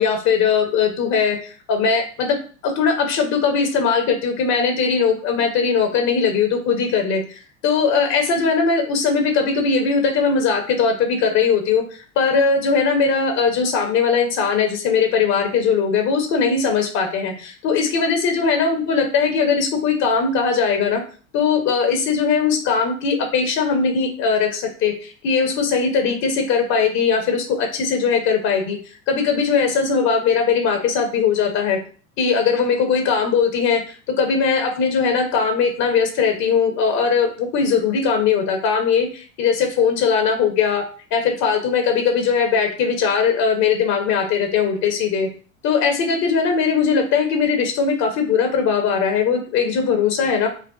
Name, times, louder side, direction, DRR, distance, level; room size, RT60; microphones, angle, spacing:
voice 1, 0.0-2.4 2.6-21.0 21.3-28.8 29.1-31.8 32.2-40.8 41.1-45.3 45.6-50.5, left 5 dB, 40° left, 4 dB, 0.9 m, -20 dB
5.2 x 2.4 x 2.4 m, 0.39 s
figure-of-eight pair, 80°, 41 cm